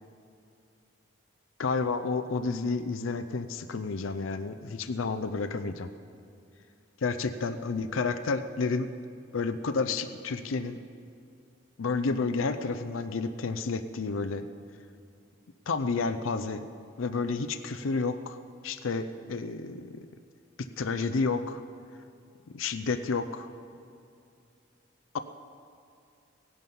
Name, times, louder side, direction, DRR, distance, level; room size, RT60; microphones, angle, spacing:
voice 1, 1.6-5.9 7.0-8.9 9.3-10.8 11.8-14.4 15.7-16.7 17.0-18.4 18.6-20.1 20.6-21.6 22.5-23.5, left 4 dB, 85° left, 10 dB, 0.6 m, -30 dB
17.0 x 11.5 x 5.4 m, 2.5 s
head